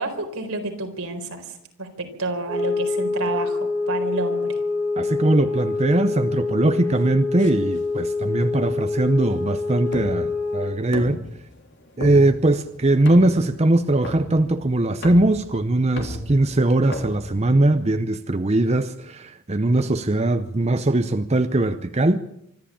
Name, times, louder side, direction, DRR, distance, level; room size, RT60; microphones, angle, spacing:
voice 1, 0.0-1.4 1.8-4.6, right 2 dB, 75° right, 4.4 m, -29 dB
sound 1, 2.5-10.8, left 3 dB, 15° left, 6.6 m, -26 dB
voice 2, 5.0-11.2 12.0-22.2, right 2 dB, 30° right, 0.7 m, -20 dB
sound 2, 7.4-18.1, equal, 55° left, 3.3 m, -38 dB
25.0 x 12.5 x 8.6 m
head